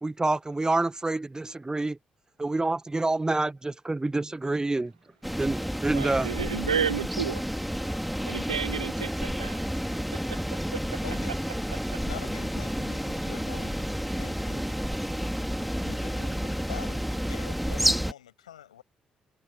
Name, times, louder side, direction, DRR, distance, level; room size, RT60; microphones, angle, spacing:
voice 1, 0.0-2.0 2.4-4.9 5.4-6.3, right 2 dB, 20° right, 1.3 m, -27 dB
sound 1, 5.2-18.1, equal, ahead, 3.1 m, -30 dB
voice 2, 5.9-7.4 8.3-9.6 10.1-10.4 10.7-11.0, right 7 dB, 90° right, 0.7 m, -31 dB
voice 3, 11.0-11.5 12.0-14.6 15.8-17.0 17.3-18.8, left 10 dB, 85° left, 7.5 m, -45 dB
figure-of-eight pair, 40°, 4 cm